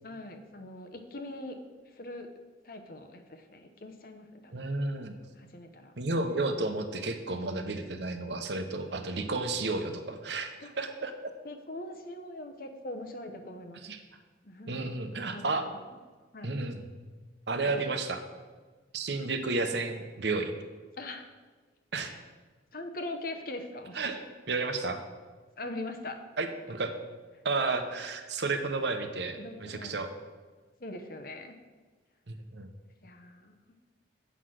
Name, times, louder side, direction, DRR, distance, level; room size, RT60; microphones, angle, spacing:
voice 1, 0.0-1.6 1.9-2.3 2.6-4.7 5.4-5.9 7.3-7.9 10.6-10.7 11.4-13.8 14.4-15.0 15.3-15.8 16.3-16.5 17.6-18.0 21.0-21.2 22.0-22.2 22.7-24.0 25.6-26.2 29.4-29.9 30.8-31.6 33.0-33.6, left 2 dB, 50° left, 6 dB, 0.9 m, -42 dB
voice 2, 4.5-5.2 6.0-10.5 10.8-11.1 13.8-14.0 14.7-15.6 16.4-16.8 17.5-18.2 18.9-20.5 21.9-22.1 23.9-24.2 24.5-25.0 26.4-26.9 27.4-30.1 32.3-32.7, right 3 dB, 70° right, 7 dB, 0.9 m, -32 dB
8.1 x 5.9 x 6.3 m, 1.4 s
head